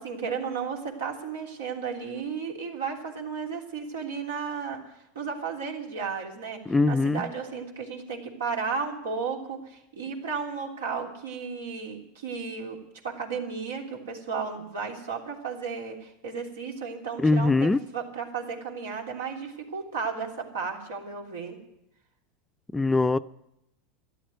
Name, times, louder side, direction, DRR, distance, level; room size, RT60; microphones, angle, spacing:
voice 1, 0.0-4.8 5.1-6.6 6.9-21.6, right 5 dB, 90° right, 1 dB, 3.2 m, -34 dB
voice 2, 6.7-7.3 17.2-17.8 22.7-23.2, left 3 dB, 10° left, 13 dB, 0.5 m, -22 dB
13.5 x 11.5 x 9.3 m, 0.83 s
hypercardioid pair, 100°, 0 cm